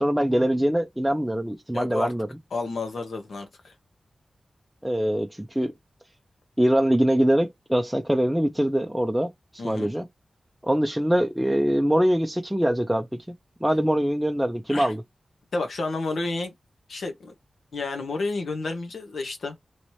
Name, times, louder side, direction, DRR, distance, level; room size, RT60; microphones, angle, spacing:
voice 1, 0.0-2.3 4.8-5.7 6.6-10.1 10.6-13.3 13.6-15.0, equal, 5° right, 0.4 m, -23 dB
voice 2, 1.7-2.1 2.5-3.7 9.6-9.9 14.7-14.9 15.5-16.5 16.9-17.3 17.7-19.5, left 3 dB, 85° left, 0.9 m, -30 dB
3.1 x 2.8 x 3.1 m
wide cardioid pair, 100°, 0 cm